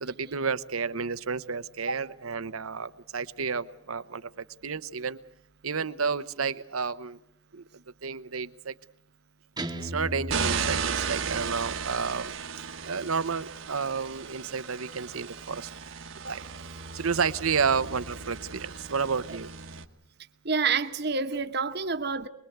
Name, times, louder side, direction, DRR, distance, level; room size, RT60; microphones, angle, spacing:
voice 1, 0.0-4.3 4.6-5.2 5.6-7.2 7.5-7.6 8.0-8.7 9.8-12.3 12.8-15.7 16.3-16.4 16.9-19.5, right 5 dB, 90° right, 1.0 m, -31 dB
Guitar, 9.6-11.6, right 1 dB, 20° right, 1.1 m, -37 dB
sound 1, 10.3-19.8, right 6 dB, 70° right, 1.3 m, -35 dB
voice 2, 20.4-22.3, right 5 dB, 50° right, 1.2 m, -28 dB
24.5 x 22.0 x 8.0 m
head